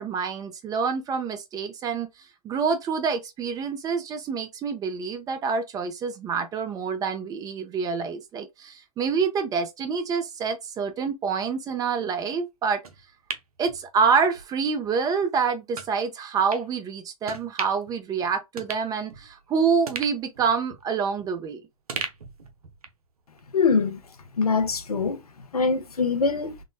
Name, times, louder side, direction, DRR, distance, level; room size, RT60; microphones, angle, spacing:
voice 1, 0.0-2.1 2.4-12.8 13.6-21.6, right 5 dB, 20° right, 0.5 m, -27 dB
sound 1, 12.8-14.5 14.8-14.9 15.7-15.9 16.5-16.7 17.2-17.9 18.2-18.3 18.6-19.5 19.9-21.5 21.9-23.1 23.4-23.5, right 5 dB, 85° right, 0.6 m, -38 dB
voice 2, 23.5-24.0 24.4-25.2 25.5-26.6, left 4 dB, 90° left, 0.6 m, -23 dB
3.6 x 2.0 x 2.2 m
hypercardioid pair, 110°, 19 cm